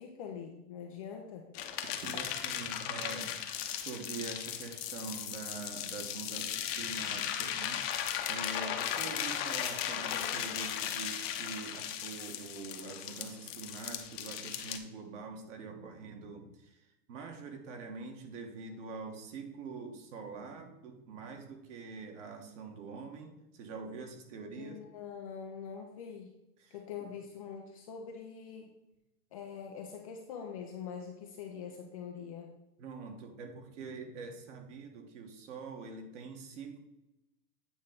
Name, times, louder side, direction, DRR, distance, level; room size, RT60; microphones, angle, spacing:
voice 1, 0.0-1.5 24.6-26.3 26.7-28.7 29.3-32.5, left 7 dB, 25° left, 1 dB, 0.4 m, -44 dB
sound 1, 1.5-14.8, left 10 dB, 40° left, 0.8 m, -37 dB
voice 2, 2.0-3.4 3.7-7.8 8.3-24.8 26.6-26.8 32.8-36.8, right 4 dB, 50° right, 4 dB, 1.5 m, -44 dB
8.8 x 3.1 x 5.2 m, 0.91 s
hypercardioid pair, 125°, 47 cm